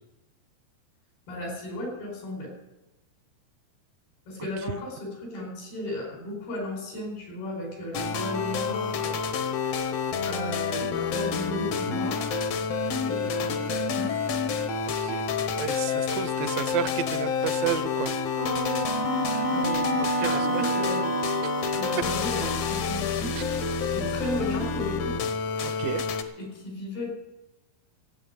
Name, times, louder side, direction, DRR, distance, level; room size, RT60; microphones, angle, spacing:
voice 1, 1.3-2.5 4.3-9.2 10.2-12.4 12.9-14.4 19.5-21.2 21.7-23.3 23.9-25.2 26.4-27.1, left 1 dB, 90° left, 1 dB, 6.5 m, -35 dB
sound 1, 7.9-26.2, left 5 dB, 75° left, 1.5 m, -29 dB
voice 2, 15.6-18.1 20.2-20.7 21.4-21.5 23.4-23.5 25.6-26.0, right 12 dB, 80° right, 12 dB, 2.2 m, -32 dB
Wind instrument woodwind instrument, 18.3-22.8, right 2 dB, 30° right, 0.5 m, -29 dB
14.0 x 8.3 x 9.4 m, 1.0 s
omnidirectional pair, 4.3 m